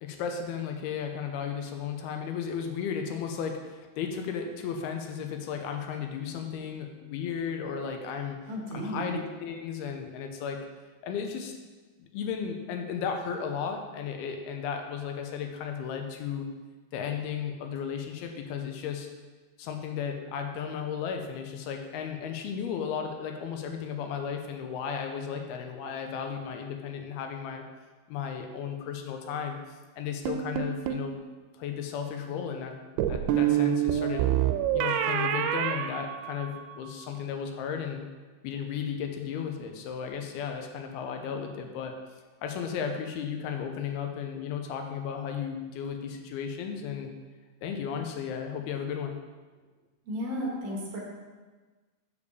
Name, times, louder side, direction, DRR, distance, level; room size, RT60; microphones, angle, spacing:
voice 1, 0.0-8.4 8.7-10.6 11.0-11.5 12.0-16.5 16.9-19.1 19.6-27.6 28.1-29.6 30.0-31.2 31.5-32.8 33.1-34.3 34.7-38.1 38.4-41.9 42.4-47.1 47.6-49.2, left 7 dB, 85° left, 4 dB, 2.6 m, -34 dB
voice 2, 8.5-9.2 50.1-51.0, equal, 60° right, -2 dB, 2.0 m, -33 dB
sound 1, 30.3-31.1 33.0-36.7, right 11 dB, 85° right, 2.4 m, -27 dB
6.9 x 5.1 x 6.7 m, 1.3 s
omnidirectional pair, 4.5 m